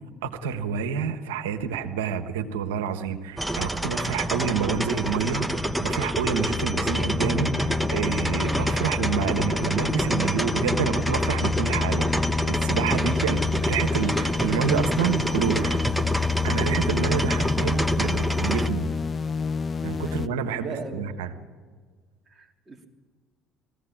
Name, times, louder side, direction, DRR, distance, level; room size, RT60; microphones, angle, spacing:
voice 1, 0.2-5.5 5.8-15.8 16.4-18.9 19.8-21.3, right 7 dB, 80° right, 8 dB, 1.4 m, -28 dB
sound 1, 3.4-18.7, right 1 dB, 5° right, 1.1 m, -28 dB
sound 2, 5.1-20.3, left 5 dB, 35° left, 0.5 m, -29 dB
voice 2, 17.5-18.5 20.1-20.2 20.6-21.2 22.3-22.9, right 3 dB, 25° right, 2 dB, 3.3 m, -39 dB
20.0 x 15.5 x 8.8 m, 1.5 s
hypercardioid pair, 60°, 0 cm